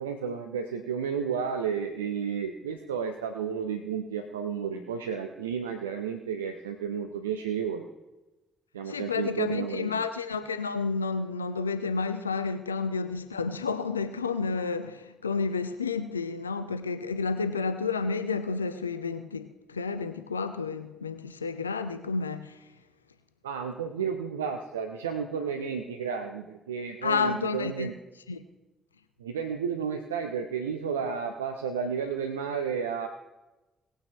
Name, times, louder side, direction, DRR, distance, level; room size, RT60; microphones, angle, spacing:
voice 1, 0.0-7.9 8.7-9.9 23.4-27.9 29.2-33.1, right 7 dB, 80° right, 0.6 m, -32 dB
voice 2, 8.9-22.6 27.0-27.9 28.3-28.4, left 4 dB, 85° left, 0.5 m, -31 dB
19.0 x 8.9 x 3.4 m
figure-of-eight pair, 45°, 0 cm